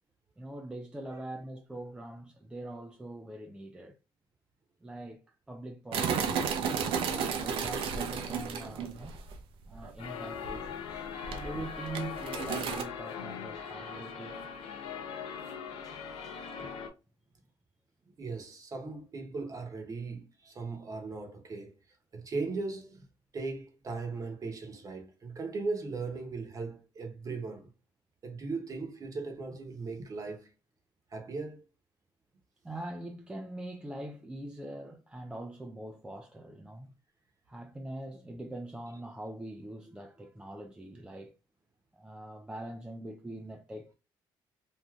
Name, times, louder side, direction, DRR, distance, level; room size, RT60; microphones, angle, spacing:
voice 1, 0.4-3.9 4.8-6.6 6.9-9.2 9.7-14.4 32.6-36.9 37.5-41.3 41.9-43.9, right 1 dB, 10° right, 0.4 m, -43 dB
sound 1, 5.9-9.4 9.7-9.9 10.4-10.9 11.2-12.8, right 6 dB, 75° right, 0.5 m, -33 dB
sound 2, 10.0-16.9, left 6 dB, 75° left, 0.6 m, -40 dB
voice 2, 18.2-21.7 22.1-23.0 23.3-27.7 28.2-30.5 31.1-31.6, right 3 dB, 35° right, 0.9 m, -38 dB
3.4 x 2.6 x 2.3 m
cardioid pair, 100°, 9 cm